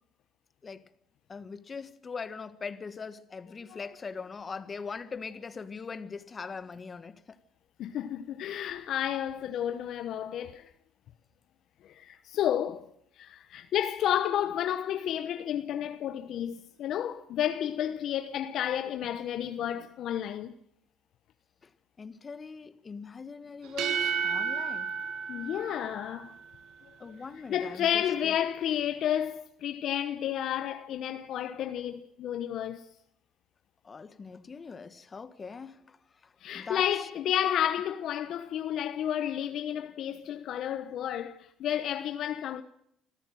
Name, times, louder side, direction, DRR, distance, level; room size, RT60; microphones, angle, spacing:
voice 1, 1.3-7.4 21.6-21.7 22.0-25.0 27.0-28.3 33.8-37.1, left 5 dB, 35° left, 1.6 m, -41 dB
voice 2, 7.8-10.7 11.8-12.9 13.2-20.5 25.3-26.3 27.1-27.2 27.5-32.8 36.4-42.6, left 10 dB, 65° left, 1.0 m, -31 dB
sound 1, 23.6-26.4, right 6 dB, 70° right, 1.9 m, -32 dB
26.0 x 14.0 x 7.7 m
hypercardioid pair, 65°, 0 cm